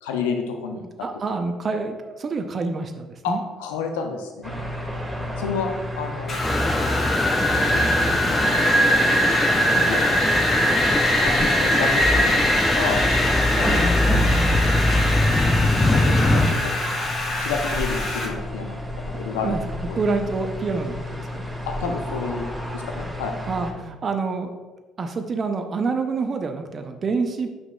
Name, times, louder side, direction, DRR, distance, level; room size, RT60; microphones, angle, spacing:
voice 1, 0.0-0.8 3.2-3.3 3.6-4.5 5.4-5.7 5.9-6.4 7.6-8.0 8.2-8.5 9.7-10.0 11.2-13.0 13.5-13.7 14.2-14.3 15.5-16.7 17.4-19.6 19.9-20.0 21.7-22.5 22.7-23.3, left 5 dB, 80° left, 4 dB, 0.6 m, -30 dB
voice 2, 1.0-3.4 11.4-11.5 19.1-19.6 20.0-21.4 23.5-24.5 25.0-27.6, right 4 dB, 45° right, 6 dB, 0.6 m, -27 dB
sound 1, 4.4-23.7, left 1 dB, 5° right, 1.8 m, -32 dB
Wind, 6.3-18.3, equal, 50° left, 2.0 m, -22 dB
sound 2, 6.4-16.5, left 1 dB, 20° left, 0.5 m, -23 dB
7.9 x 5.8 x 2.3 m, 1.2 s
hypercardioid pair, 50°, 0 cm